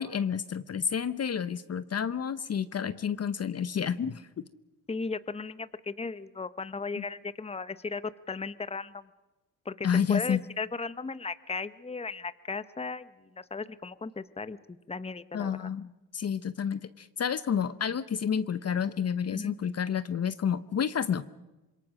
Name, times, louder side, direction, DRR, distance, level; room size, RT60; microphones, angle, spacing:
voice 1, 0.0-4.4 9.8-10.4 15.3-21.3, left 7 dB, 45° left, 14 dB, 0.8 m, -30 dB
voice 2, 4.9-9.1 9.6-13.1 13.4-15.7 19.3-19.5, left 4 dB, 15° left, 15 dB, 0.9 m, -36 dB
26.0 x 22.0 x 6.4 m, 1.1 s
cardioid pair, 70°, 36 cm